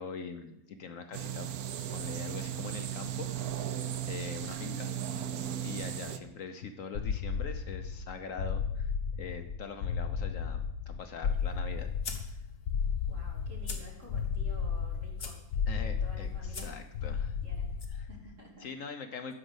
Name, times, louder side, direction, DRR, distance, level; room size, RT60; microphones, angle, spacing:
voice 1, 0.0-1.5 1.9-4.9 5.6-8.9 9.2-11.9 15.7-17.4 17.9-18.1 18.6-19.3, left 5 dB, 60° left, 7 dB, 1.1 m, -43 dB
sound 1, 1.1-6.2, right 10 dB, 75° right, 1.2 m, -36 dB
voice 2, 4.4-5.4 13.1-16.7 17.4-17.7 18.1-18.9, equal, 50° right, -2 dB, 3.1 m, -51 dB
sound 2, 6.9-18.3, left 6 dB, 80° left, 1.3 m, -34 dB
sound 3, 11.2-17.9, left 3 dB, 40° left, 1.4 m, -47 dB
12.5 x 5.1 x 8.0 m, 0.83 s
omnidirectional pair, 1.7 m